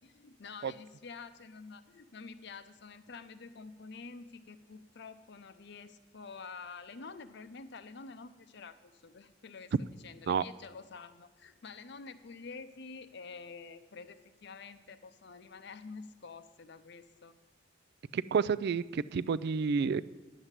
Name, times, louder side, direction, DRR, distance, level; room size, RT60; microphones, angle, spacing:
voice 1, 0.0-9.7 10.0-17.3, left 4 dB, 65° left, 11 dB, 0.7 m, -48 dB
voice 2, 18.1-20.0, right 6 dB, 60° right, 17 dB, 0.3 m, -30 dB
10.5 x 7.4 x 8.1 m, 1.2 s
head